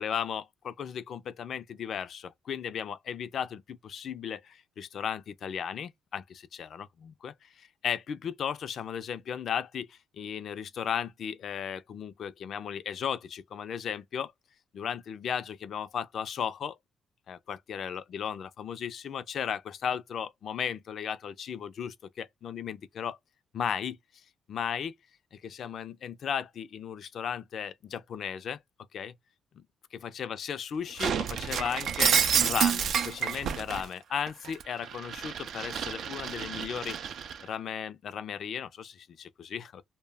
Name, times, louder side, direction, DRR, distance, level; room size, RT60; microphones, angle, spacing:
voice 1, 0.0-14.3 14.7-16.8 17.3-23.2 23.5-24.0 24.5-24.9 25.3-28.6 28.9-29.1 29.6-29.7 29.9-32.2 32.4-37.0 37.4-39.8, left 8 dB, 60° left, 0.4 m, -35 dB
Shatter, 31.0-33.8 34.3-37.4, right 7 dB, 65° right, 0.4 m, -29 dB
2.2 x 2.1 x 3.3 m
cardioid pair, 90°, 0 cm